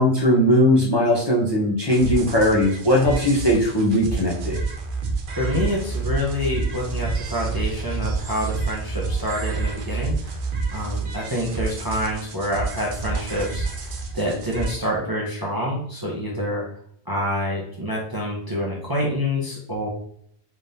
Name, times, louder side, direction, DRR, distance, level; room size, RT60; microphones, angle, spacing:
voice 1, 0.0-4.6, equal, 25° left, -3 dB, 0.8 m, -19 dB
sound 1, 1.9-14.7, right 4 dB, 55° right, 0.7 m, -29 dB
voice 2, 5.3-10.4 10.7-13.7 14.1-16.6 17.1-19.9, equal, 25° right, -4 dB, 0.7 m, -27 dB
3.5 x 3.3 x 2.7 m, 0.65 s
omnidirectional pair, 1.1 m